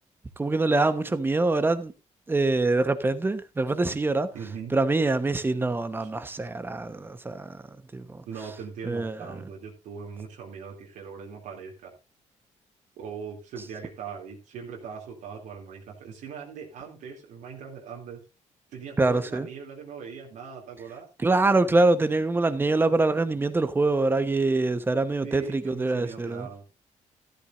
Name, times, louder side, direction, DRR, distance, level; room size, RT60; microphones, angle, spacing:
voice 1, 0.4-1.9 2.3-4.3 4.7-7.6 7.9-8.2 8.8-9.3 19.0-19.5 21.2-26.5, right 2 dB, 15° right, 1.1 m, -24 dB
voice 2, 4.3-4.8 6.0-6.1 8.2-11.9 13.0-18.2 18.7-21.1 25.2-26.6, right 6 dB, 85° right, 2.9 m, -40 dB
13.5 x 12.0 x 2.6 m
cardioid pair, 130°, 13 cm